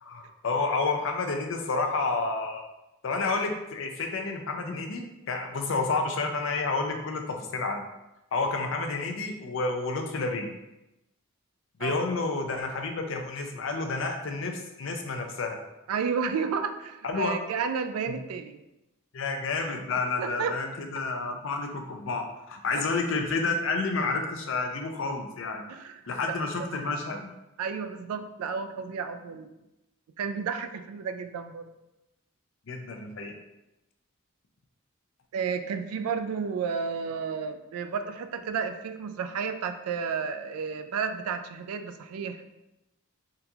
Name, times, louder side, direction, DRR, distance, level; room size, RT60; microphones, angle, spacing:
voice 1, 0.0-2.7 3.0-7.8 8.3-10.5 11.8-15.6 17.0-17.4 18.1-18.2 19.1-25.6 26.1-27.3 32.7-33.3, left 3 dB, 60° left, 4 dB, 0.4 m, -30 dB
voice 2, 15.9-18.6 19.9-20.5 22.7-22.8 25.7-26.0 26.3-27.0 27.6-29.5 30.2-31.7 35.3-42.4, right 6 dB, 85° right, 9 dB, 0.3 m, -32 dB
3.8 x 2.7 x 2.3 m, 0.93 s
head